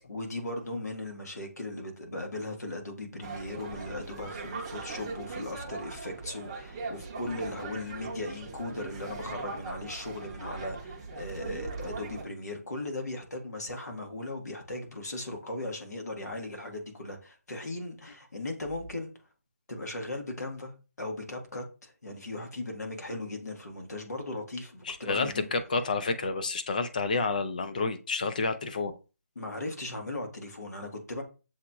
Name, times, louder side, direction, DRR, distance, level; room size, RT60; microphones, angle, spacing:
voice 1, 0.1-19.1 19.7-20.7 21.0-25.5 29.3-31.2, left 2 dB, 80° left, 1.5 m, -38 dB
sound 1, 3.2-12.2, right 3 dB, 20° right, 0.6 m, -40 dB
voice 2, 24.8-28.9, left 4 dB, 30° left, 0.4 m, -29 dB
7.1 x 2.9 x 2.3 m
figure-of-eight pair, 165°, 9 cm